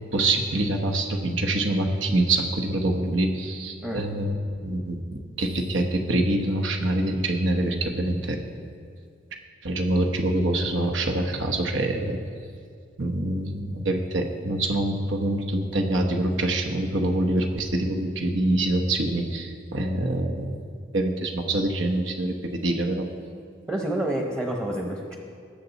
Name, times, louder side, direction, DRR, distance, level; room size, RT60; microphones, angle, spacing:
voice 1, 0.1-8.4 9.6-12.2 13.0-20.6 20.9-23.1, right 1 dB, 85° right, 3 dB, 1.1 m, -25 dB
voice 2, 23.7-25.2, right 1 dB, 15° right, 1 dB, 0.8 m, -28 dB
19.0 x 6.9 x 4.1 m, 2.2 s
head